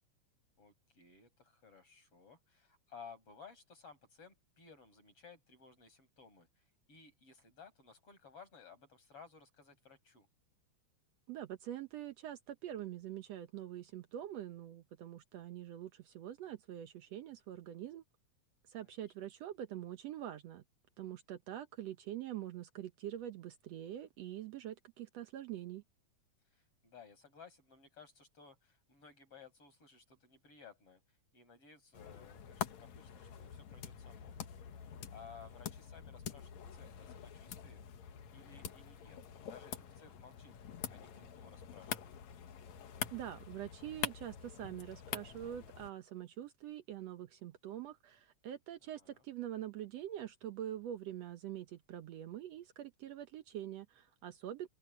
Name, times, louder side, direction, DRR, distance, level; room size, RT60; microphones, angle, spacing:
voice 1, 0.6-6.6 6.9-10.3 18.8-18.9 26.5-31.0 31.3-34.3 35.1-37.8 38.3-40.5 40.9-42.1 49.0-49.2, left 5 dB, 50° left, 7.8 m, -58 dB
voice 2, 11.3-18.0 18.7-20.6 21.0-25.8 43.1-54.7, right 11 dB, 70° right, 1.9 m, -45 dB
sound 1, 31.9-45.9, left 9 dB, 70° left, 2.8 m, -46 dB
open air
omnidirectional pair, 3.3 m